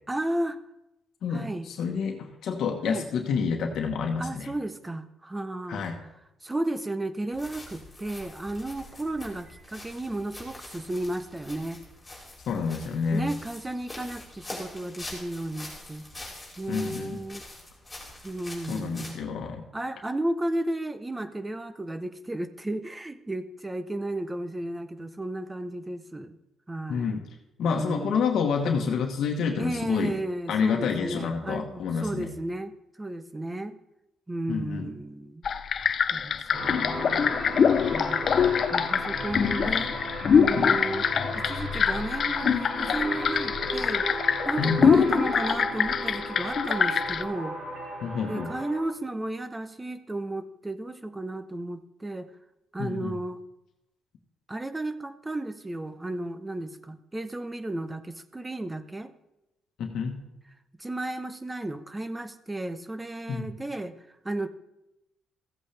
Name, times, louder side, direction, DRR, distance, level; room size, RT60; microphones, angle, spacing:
voice 1, 0.1-0.6 1.3-1.7 2.8-3.0 4.2-5.9 6.4-11.8 13.1-16.1 16.6-17.4 18.2-19.2 19.7-26.4 26.7-27.2 27.6-28.2 29.6-33.8 34.3-35.4 36.1-37.4 37.9-38.3 38.7-39.9 40.3-41.1 41.4-44.1 44.5-47.6 48.3-52.3 52.7-53.4 54.5-59.1 60.8-63.9 64.2-64.5, right 1 dB, 15° right, 12 dB, 0.7 m, -33 dB
voice 2, 1.2-4.5 5.7-6.0 12.5-13.3 16.7-17.2 18.7-19.6 26.9-27.2 27.6-30.1 30.5-32.3 34.5-34.9 40.6-40.7 44.6-44.9 48.0-48.5 52.8-53.1 59.8-60.2 63.3-63.5, left 6 dB, 65° left, 3 dB, 1.2 m, -28 dB
sound 1, 7.3-19.1, left 1 dB, 5° left, 3.5 m, -44 dB
sound 2, 35.4-47.2, left 7 dB, 45° left, 0.5 m, -24 dB
sound 3, 36.5-48.8, right 1 dB, 45° right, 4.5 m, -35 dB
15.0 x 8.2 x 3.4 m, 0.91 s
cardioid pair, 120°, 0 cm